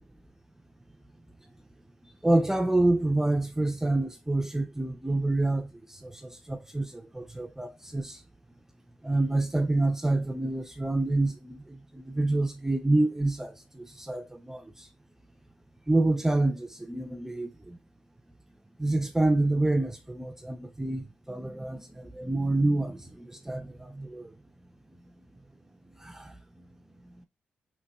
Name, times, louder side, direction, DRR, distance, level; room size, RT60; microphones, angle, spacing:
voice 1, 2.2-8.2 9.0-14.6 15.9-17.8 18.8-24.3 26.0-26.3, right 2 dB, 10° right, 0.4 m, -27 dB
4.0 x 2.9 x 2.2 m
cardioid pair, 75°, 4 cm